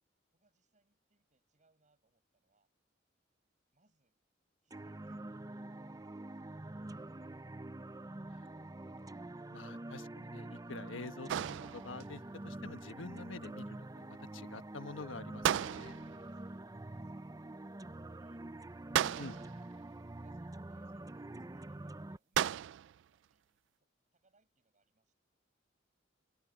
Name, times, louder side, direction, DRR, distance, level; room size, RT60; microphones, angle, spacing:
voice 1, 0.3-2.7 3.7-4.2 4.6-6.6 16.3-17.3 17.8-18.5 19.7-25.1, right 3 dB, 40° right, 7.5 m, -76 dB
sound 1, 4.7-22.2, right 2 dB, 20° right, 0.6 m, -46 dB
voice 2, 8.3-9.1 9.5-11.3 11.7-15.9 19.2-19.4, left 3 dB, 90° left, 1.2 m, -48 dB
sound 2, 11.3-12.2 15.4-16.3 18.9-19.7 22.3-23.0, right 10 dB, 65° right, 0.3 m, -34 dB
head